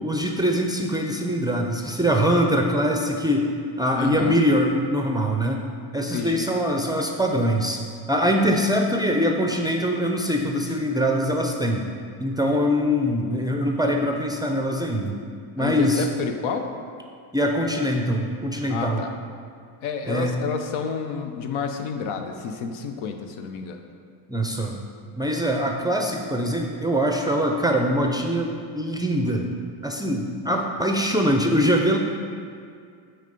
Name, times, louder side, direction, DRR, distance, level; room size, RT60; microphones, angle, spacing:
voice 1, 0.0-3.5 3.8-5.6 5.9-7.8 8.1-11.8 12.2-15.2 15.6-16.0 17.3-19.0 20.1-20.3 24.3-24.7 25.2-29.5 29.8-32.0, equal, 10° right, 1 dB, 0.4 m, -23 dB
voice 2, 4.0-4.4 6.1-6.5 15.6-16.7 18.7-19.1 19.8-23.8, left 6 dB, 80° left, 5 dB, 0.9 m, -29 dB
8.9 x 3.4 x 5.3 m, 2.3 s
cardioid pair, 105°, 50 cm